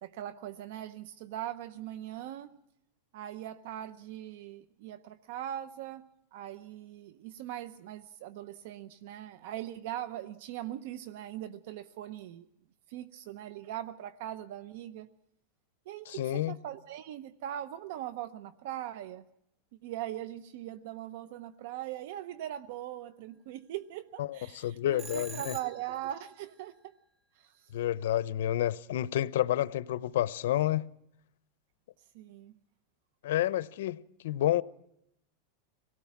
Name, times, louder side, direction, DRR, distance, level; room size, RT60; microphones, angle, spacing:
voice 1, 0.0-2.6 3.1-12.5 12.9-15.1 15.9-19.2 19.8-26.9 27.3-27.7 32.1-32.6, right 12 dB, 65° right, 0.8 m, -41 dB
voice 2, 16.1-16.5 24.2-25.5 27.7-30.8 33.2-34.0 34.2-34.6, left 12 dB, 75° left, 0.8 m, -29 dB
Telephone, 25.0-26.1, right 4 dB, 20° right, 1.8 m, -44 dB
25.5 x 18.0 x 6.0 m
supercardioid pair, 145°, 0 cm